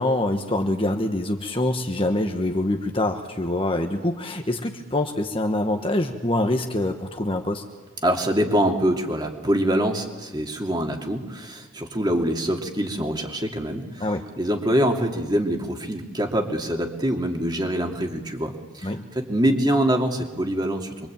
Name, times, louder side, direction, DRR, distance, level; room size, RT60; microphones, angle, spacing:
voice 1, 0.0-7.6 14.0-14.3 18.8-19.0, left 1 dB, 25° left, 4 dB, 1.4 m, -25 dB
voice 2, 8.0-14.1 14.4-21.1, equal, 20° right, 3 dB, 2.8 m, -24 dB
26.5 x 24.0 x 9.0 m, 1.3 s
head